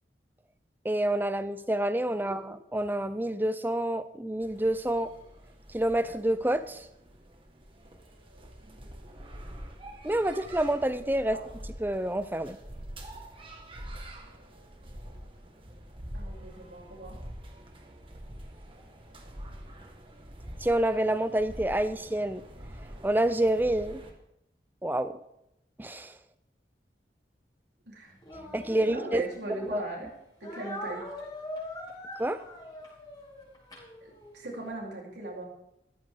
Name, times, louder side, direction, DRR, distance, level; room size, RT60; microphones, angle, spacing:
voice 1, 0.8-5.1 5.7-6.9 10.0-11.4 11.8-12.6 20.6-22.4 23.0-24.0 24.8-25.2 25.8-26.1 28.5-29.2 29.7-29.8 32.2-32.4, right 1 dB, 10° right, 12 dB, 0.6 m, -28 dB
sound 1, 4.4-24.1, equal, 30° right, 1.9 m, -46 dB
voice 2, 16.1-17.2 27.9-30.1 30.4-31.0 34.0-35.5, right 2 dB, 85° right, -2 dB, 4.2 m, -39 dB
Speech, 28.2-29.8 30.4-34.5, left 1 dB, 25° left, 4.4 m, -42 dB
15.0 x 14.0 x 3.9 m, 0.84 s
head